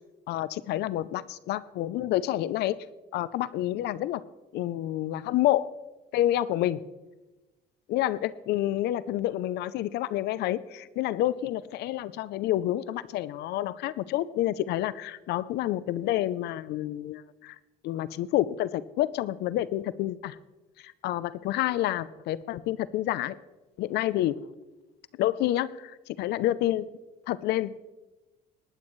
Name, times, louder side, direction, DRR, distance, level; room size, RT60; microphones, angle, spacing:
voice 1, 0.3-2.7 3.1-4.2 4.5-5.7 6.1-6.8 7.9-17.6 17.8-20.4 20.8-23.4 23.8-24.4 25.2-26.9 27.3-27.8, left 14 dB, 80° left, 17 dB, 0.5 m, -28 dB
19.5 x 11.5 x 3.2 m, 1.1 s
cardioid pair, 110°, 17 cm